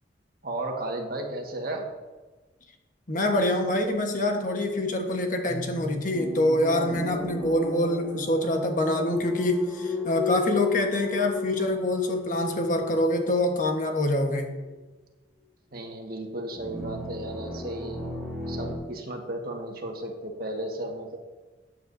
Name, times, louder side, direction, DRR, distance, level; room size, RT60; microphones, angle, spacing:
voice 1, 0.4-1.9 15.7-18.1 18.5-21.2, right 1 dB, 55° right, 2 dB, 1.6 m, -34 dB
voice 2, 3.1-14.6, left 1 dB, 50° left, 4 dB, 1.2 m, -25 dB
sound 1, 5.5-14.6 16.5-18.7, left 4 dB, 5° right, 2.3 m, -34 dB
14.0 x 9.2 x 2.7 m, 1.2 s
head